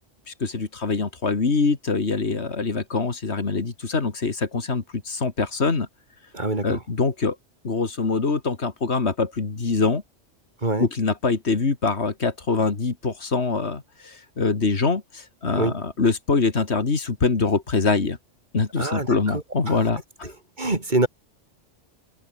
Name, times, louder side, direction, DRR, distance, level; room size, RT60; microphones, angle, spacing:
voice 1, 0.3-5.9 6.6-7.4 7.6-10.0 10.8-18.2 18.5-20.3, left 4 dB, 60° left, 2.5 m, -24 dB
voice 2, 6.3-6.8 10.6-10.9 15.5-15.8 18.8-19.8 20.2-20.3 20.6-21.1, right 2 dB, 40° right, 3.0 m, -25 dB
omnidirectional pair, 1.3 m